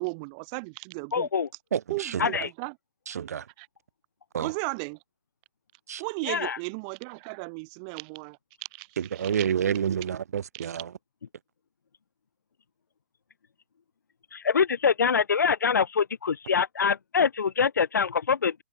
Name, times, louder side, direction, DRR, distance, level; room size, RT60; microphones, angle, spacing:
voice 1, 0.0-1.3 1.9-2.7 3.6-3.7 4.4-5.0 6.0-8.4 8.7-8.9 9.1-9.3 10.5-10.7, right 34 dB, 25° right, 3.0 m, -35 dB
voice 2, 1.1-1.5 2.2-2.5 6.3-6.6 14.3-18.6, left 6 dB, 75° left, 1.0 m, -24 dB
voice 3, 1.7-2.3 3.1-3.4 4.3-4.5 5.9-6.0 9.0-10.9, right 8 dB, 55° right, 6.4 m, -29 dB
hypercardioid pair, 150°, 10 cm